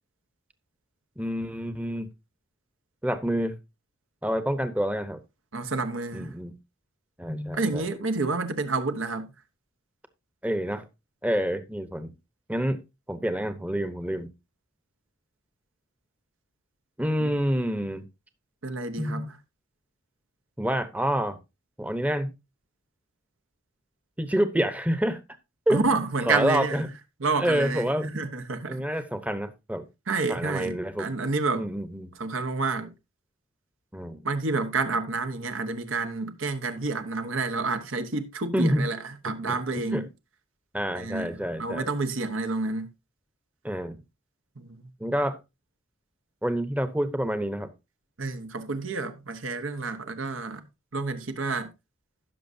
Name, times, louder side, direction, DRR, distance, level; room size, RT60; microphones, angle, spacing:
voice 1, 1.2-2.1 3.0-3.5 4.2-5.2 6.1-6.5 7.2-7.8 10.4-10.8 11.2-12.1 12.5-12.8 13.1-14.3 17.0-18.0 19.0-19.3 20.6-21.4 21.8-22.3 24.2-25.2 25.7-25.9 26.3-26.9 27.4-28.2 28.7-29.8 30.3-31.1 31.6-32.1 33.9-34.2 38.5-38.9 39.9-40.0 40.7-41.8 43.6-44.0 45.0-45.4 46.4-47.7, equal, 5° right, 0.9 m, -27 dB
voice 2, 5.5-6.3 7.5-9.3 17.2-17.3 18.6-19.4 25.7-26.8 27.2-29.0 30.1-31.7 32.2-32.9 34.2-40.1 40.9-42.9 44.6-44.9 48.2-50.7 50.9-51.7, right 3 dB, 75° right, 1.1 m, -29 dB
16.0 x 6.2 x 2.7 m
head